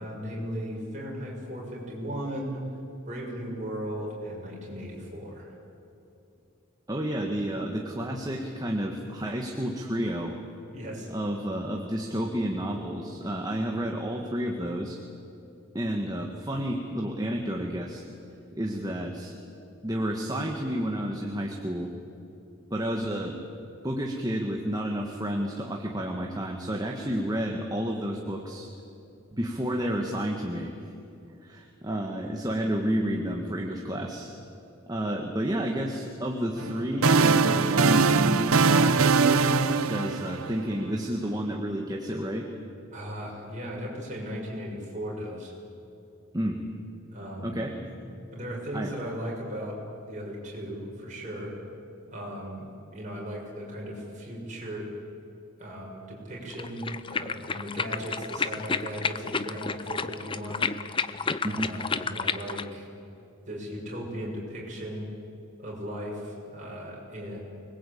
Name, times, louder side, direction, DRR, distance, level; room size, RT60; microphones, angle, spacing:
voice 1, 0.0-2.6 3.1-5.5 10.7-11.1 42.9-45.5 47.1-47.6 48.3-49.8 50.1-51.5 52.1-52.7 52.9-54.8 55.6-60.7 61.5-62.9 63.5-65.1 65.6-67.4, equal, 35° right, -3 dB, 7.1 m, -37 dB
voice 2, 6.9-10.4 11.1-15.0 15.7-18.0 18.5-19.4 19.8-21.9 22.7-28.7 29.3-30.7 31.4-34.3 34.9-42.5 46.3-46.6 47.4-47.9 48.7-48.9 61.4-61.7, equal, 20° right, 1 dB, 1.7 m, -30 dB
sound 1, 36.6-40.8, right 4 dB, 90° right, 0.8 m, -22 dB
sound 2, 56.5-62.7, left 5 dB, 25° left, 0.6 m, -31 dB
24.5 x 21.5 x 8.7 m, 2.7 s
head